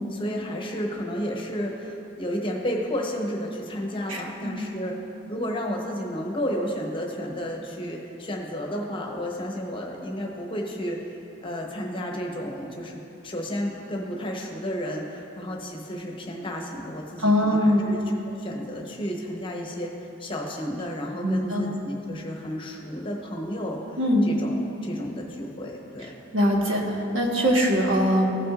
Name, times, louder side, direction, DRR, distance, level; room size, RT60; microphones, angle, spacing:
voice 1, 0.1-4.9 5.3-11.0 11.4-13.0 13.2-18.0 18.2-26.1, equal, 25° left, 0 dB, 0.9 m, -32 dB
voice 2, 4.1-4.7 17.2-17.9 21.2-21.6 24.0-24.3 26.3-28.3, equal, 80° right, -2 dB, 1.4 m, -22 dB
15.5 x 5.9 x 2.5 m, 2.9 s
head